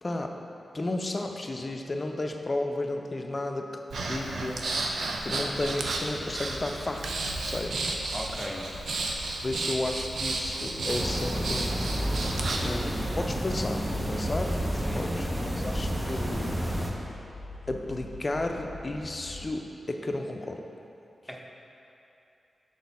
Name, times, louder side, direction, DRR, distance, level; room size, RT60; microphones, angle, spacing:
voice 1, 0.0-0.4 0.7-3.7 4.0-7.9 9.4-11.7 12.6-14.6 14.9-16.6 17.7-20.7, left 2 dB, 40° left, 3 dB, 0.5 m, -33 dB
Breathing, 3.9-12.8, right 2 dB, 80° right, 0.5 m, -33 dB
sound 1, 5.8-19.5, left 2 dB, 90° left, 0.7 m, -45 dB
voice 2, 8.1-8.7 14.8-15.1 21.3-21.5, equal, 5° left, -1 dB, 0.9 m, -37 dB
sound 2, 10.9-16.9, equal, 25° right, 0.8 m, -30 dB
6.2 x 4.0 x 4.1 m, 2.7 s
supercardioid pair, 40°, 0 cm